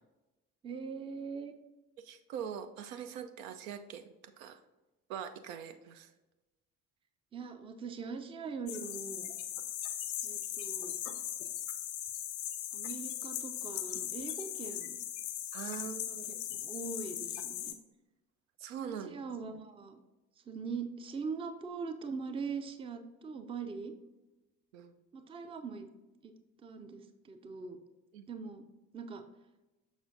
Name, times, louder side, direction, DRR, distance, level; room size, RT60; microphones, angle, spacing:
voice 1, 0.6-1.5 7.3-9.3 10.2-10.9 12.7-15.0 16.1-17.8 18.8-20.0 20.4-23.9 25.1-25.9 26.2-26.3 26.6-27.8 28.3-28.6 28.9-29.2, right 5 dB, 15° right, 8 dB, 0.4 m, -42 dB
voice 2, 2.0-4.6 5.1-6.1 15.5-16.3 18.6-19.2 24.7-24.9 28.1-28.3, right 8 dB, 70° right, 8 dB, 0.5 m, -43 dB
sound 1, 8.7-17.7, left 11 dB, 70° left, 0.6 m, -39 dB
6.1 x 6.0 x 2.6 m, 1.1 s
figure-of-eight pair, 45°, 44 cm